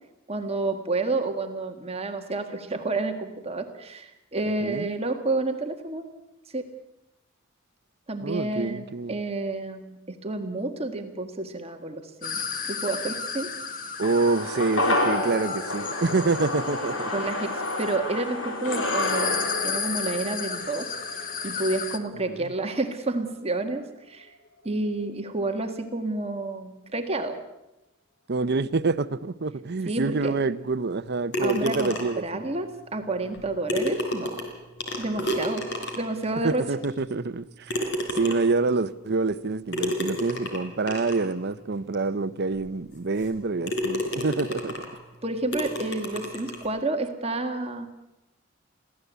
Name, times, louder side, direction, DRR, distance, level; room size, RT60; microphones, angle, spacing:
voice 1, 0.3-6.1 6.5-6.6 8.1-12.4 12.7-13.5 17.1-19.3 19.6-20.9 21.4-24.3 24.6-27.4 29.8-30.3 31.4-34.4 35.0-35.6 35.9-36.6 45.2-47.9, right 2 dB, 30° right, 1.7 m, -30 dB
voice 2, 8.2-9.2 14.0-17.1 22.3-22.5 28.3-32.2 35.2-35.3 36.4-37.9 38.1-44.7, right 3 dB, 55° right, 0.7 m, -27 dB
sound 1, 12.2-22.0, left 6 dB, 45° left, 1.6 m, -34 dB
sound 2, 14.0-22.5 22.8-22.9, left 2 dB, 85° left, 4.3 m, -30 dB
sound 3, 31.3-32.3 33.3-33.4 33.7-36.2 36.8-36.9 37.7-38.6 39.7-41.2 41.9-42.0 42.5-42.6 43.2-43.4 43.7-45.0 45.5-46.7, left 1 dB, 60° left, 4.4 m, -30 dB
22.5 x 16.0 x 8.2 m
head